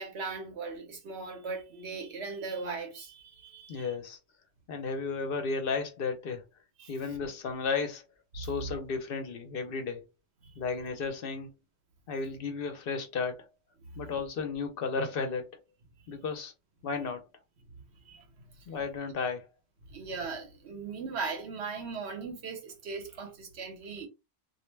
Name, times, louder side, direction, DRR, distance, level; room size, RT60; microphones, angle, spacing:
voice 1, 0.0-3.9 6.8-6.9 8.4-8.8 10.4-10.5 18.0-18.7 19.9-24.1, right 4 dB, 80° right, 1.1 m, -39 dB
voice 2, 3.7-4.2 4.7-6.4 6.9-8.1 8.3-10.0 10.6-11.5 12.1-13.5 14.0-15.6 16.1-16.5 16.8-17.3 18.7-19.5, left 4 dB, 65° left, 0.8 m, -33 dB
2.5 x 2.1 x 3.1 m
omnidirectional pair, 1.1 m